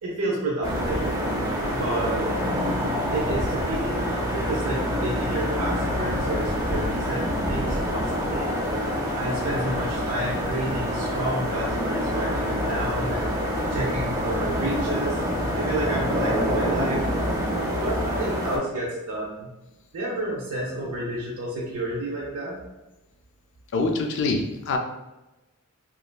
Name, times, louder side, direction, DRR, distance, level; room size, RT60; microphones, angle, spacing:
voice 1, 0.0-1.1 1.7-2.2 3.1-8.6 8.8-13.3 13.7-15.2 15.6-17.1 17.7-19.5 19.9-22.6, right 1 dB, 80° right, -4 dB, 0.6 m, -30 dB
sound 1, 0.6-18.6, equal, 15° right, 0.5 m, -26 dB
voice 2, 23.7-24.8, left 3 dB, 55° left, 3 dB, 0.4 m, -25 dB
2.8 x 2.4 x 2.2 m, 1.0 s
head